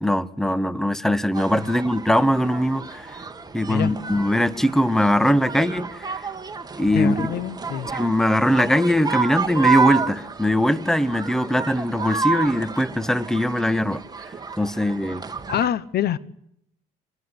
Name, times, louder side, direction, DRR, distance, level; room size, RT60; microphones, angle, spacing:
voice 1, 0.0-3.2 3.5-6.3 6.8-7.3 7.9-14.0 14.6-15.2, equal, ahead, 1.2 m, -21 dB
sound 1, 1.3-15.7, right 5 dB, 20° right, 2.2 m, -30 dB
voice 2, 6.9-7.9 15.5-16.2, left 10 dB, 60° left, 1.1 m, -25 dB
25.0 x 20.0 x 9.9 m
supercardioid pair, 85°, 19 cm